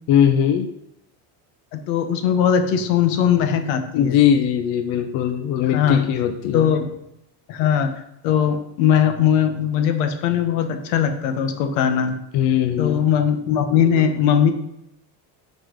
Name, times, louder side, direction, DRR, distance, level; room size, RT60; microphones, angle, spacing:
voice 1, 0.1-0.7 3.9-6.7 12.3-13.0, left 9 dB, 60° left, 7 dB, 0.8 m, -19 dB
voice 2, 1.7-4.2 5.6-6.1 6.5-6.9 7.5-12.2 12.8-14.5, left 8 dB, 90° left, 8 dB, 1.2 m, -20 dB
9.6 x 4.3 x 5.1 m, 0.81 s
cardioid pair, 170°, 46 cm